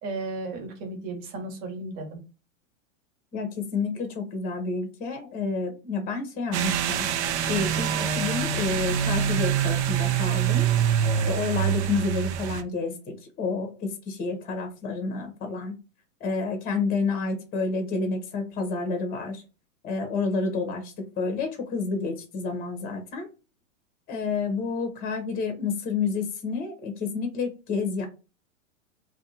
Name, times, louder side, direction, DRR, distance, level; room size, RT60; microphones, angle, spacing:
voice 1, 0.0-2.2, right 3 dB, 45° right, 3 dB, 1.2 m, -34 dB
voice 2, 3.3-7.0 7.5-10.7 11.3-15.8 16.2-19.4 19.8-23.3 24.1-28.1, left 4 dB, 25° left, 6 dB, 0.8 m, -29 dB
sound 1, 6.5-12.6, right 9 dB, 60° right, 0.5 m, -25 dB
2.6 x 2.3 x 4.0 m, 0.31 s
hypercardioid pair, 130°, 39 cm